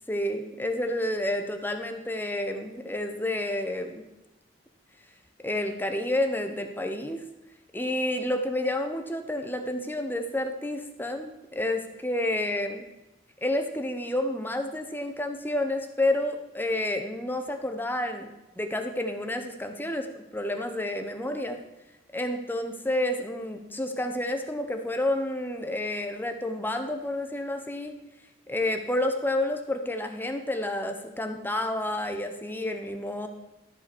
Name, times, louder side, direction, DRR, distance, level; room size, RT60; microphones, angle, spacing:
voice 1, 0.1-4.0 5.4-7.2 7.7-12.8 13.4-20.1 20.3-21.6 22.1-27.9 28.5-33.3, left 1 dB, 10° left, 6 dB, 1.0 m, -30 dB
13.0 x 5.8 x 6.1 m, 0.97 s
head